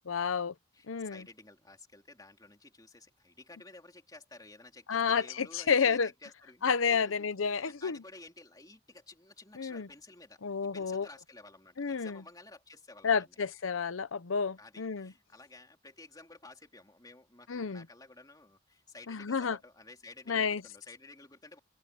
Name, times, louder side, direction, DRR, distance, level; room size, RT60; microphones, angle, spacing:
voice 1, 0.1-0.5 0.9-1.2 4.9-6.1 6.6-8.0 9.6-9.9 10.4-11.1 11.8-12.2 13.0-15.1 17.5-17.8 19.1-19.6 20.3-20.6, left 6 dB, 90° left, 0.7 m, -30 dB
voice 2, 0.7-7.1 7.4-13.4 14.6-21.6, left 3 dB, 20° left, 3.2 m, -53 dB
head